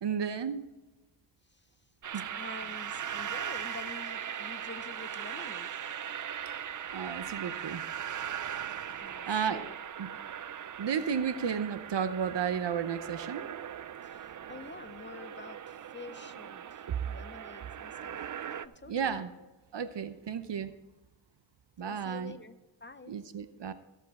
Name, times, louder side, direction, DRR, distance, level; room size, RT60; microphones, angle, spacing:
voice 1, 0.0-0.6 2.1-2.3 6.9-7.8 9.3-9.7 10.0-10.1 10.8-13.6 16.9-17.0 18.9-19.3 19.7-20.7 21.8-22.3 23.1-23.7, right 7 dB, 65° right, 11 dB, 0.8 m, -33 dB
sound 1, 2.0-18.7, right 9 dB, 45° right, 0.5 m, -39 dB
voice 2, 2.4-5.8 9.0-9.7 10.1-10.2 14.0-19.2 21.8-23.2, left 3 dB, 25° left, 11 dB, 0.6 m, -48 dB
14.5 x 8.2 x 4.2 m, 1.1 s
wide cardioid pair, 110°, 47 cm